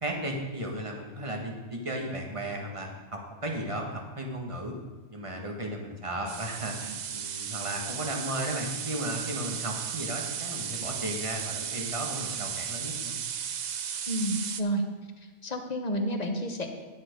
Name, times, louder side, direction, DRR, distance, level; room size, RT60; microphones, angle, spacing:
voice 1, 0.0-4.7 5.1-13.2, right 1 dB, 25° right, 1 dB, 1.4 m, -35 dB
sound 1, 6.3-14.6, right 8 dB, 55° right, 0.5 m, -35 dB
voice 2, 14.1-14.8 15.4-16.7, equal, 35° left, 4 dB, 1.0 m, -30 dB
10.5 x 7.3 x 5.1 m, 1.3 s
omnidirectional pair, 1.2 m